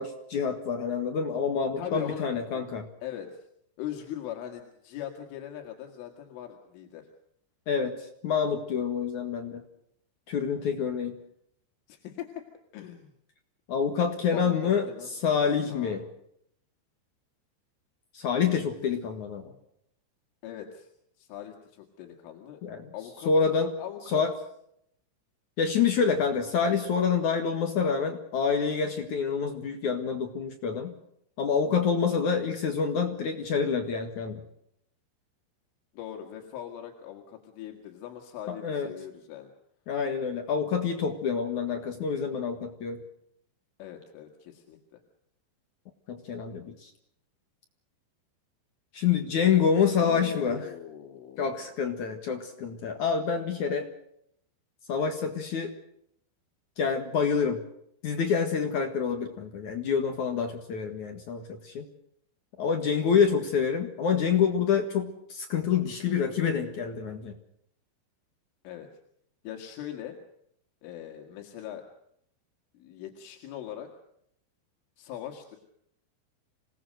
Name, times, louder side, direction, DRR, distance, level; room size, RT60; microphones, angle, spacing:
voice 1, 0.0-2.9 7.7-9.6 10.3-11.2 13.7-16.0 18.1-19.6 22.6-22.9 23.3-23.7 24.1-24.3 25.6-31.0 31.4-34.4 38.5-38.9 39.9-43.0 46.1-46.9 48.9-50.6 51.4-53.9 54.9-55.7 56.8-57.6 58.0-61.9 62.6-67.3, left 6 dB, 55° left, 5 dB, 2.3 m, -27 dB
voice 2, 1.8-2.3 3.0-3.4 3.8-7.1 11.9-12.3 12.7-13.1 14.3-15.1 15.7-16.0 20.4-20.9 21.2-22.6 22.9-23.3 23.8-24.2 35.9-39.5 43.8-45.0 49.9-51.7 68.6-68.9 69.4-70.2 70.8-71.9 72.7-73.9 75.0-75.6, left 10 dB, 85° left, 3 dB, 4.5 m, -40 dB
27.0 x 19.0 x 6.6 m, 0.71 s
omnidirectional pair, 5.5 m